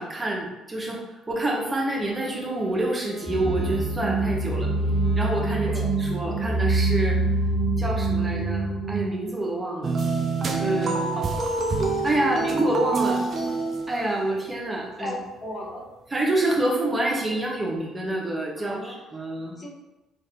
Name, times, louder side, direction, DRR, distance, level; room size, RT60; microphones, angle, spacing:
voice 1, 0.0-4.7 5.1-5.7 6.0-7.2 7.8-10.0 10.6-11.2 12.0-13.3 13.9-15.1 16.1-19.5, right 1 dB, 25° right, -2 dB, 0.9 m, -27 dB
Bowed string instrument, 1.6-6.6, left 1 dB, 85° left, 1.1 m, -45 dB
sound 1, 3.3-9.1, right 2 dB, 5° left, 0.5 m, -25 dB
sound 2, 9.8-14.4, right 3 dB, 45° right, 0.4 m, -26 dB
voice 2, 10.8-11.4 15.0-15.8 18.6-19.7, left 1 dB, 40° left, 0 dB, 0.7 m, -37 dB
3.2 x 2.4 x 2.7 m, 1.0 s
hypercardioid pair, 55°, 0 cm